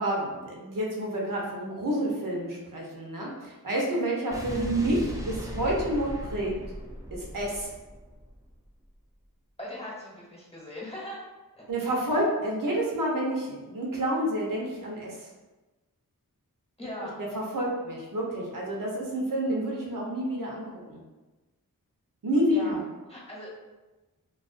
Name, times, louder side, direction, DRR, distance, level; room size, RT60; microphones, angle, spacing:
voice 1, 0.0-5.0 5.2-6.5 7.1-7.7 11.7-15.3 16.8-16.9 17.2-21.0 22.2-22.8, right 1 dB, 65° right, -3 dB, 0.8 m, -29 dB
Explosion, 4.3-8.6, equal, 10° right, 0.4 m, -38 dB
voice 2, 4.5-4.9 9.6-11.2 11.6-11.7 16.8-17.1 22.5-22.7 23.1-23.5, left 1 dB, 15° left, -6 dB, 1.0 m, -39 dB
2.3 x 2.3 x 2.5 m, 1.1 s
cardioid pair, 45°, 35 cm